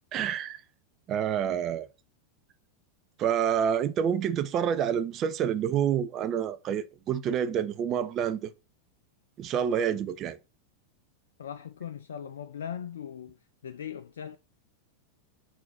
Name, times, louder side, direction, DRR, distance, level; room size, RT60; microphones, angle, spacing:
voice 1, 0.1-0.6 1.1-1.9 3.2-8.5 9.4-10.4, right 8 dB, 35° right, 0.6 m, -28 dB
voice 2, 11.4-13.4 13.6-14.4, left 8 dB, 70° left, 0.3 m, -39 dB
4.4 x 3.9 x 5.5 m
figure-of-eight pair, 90°, 0 cm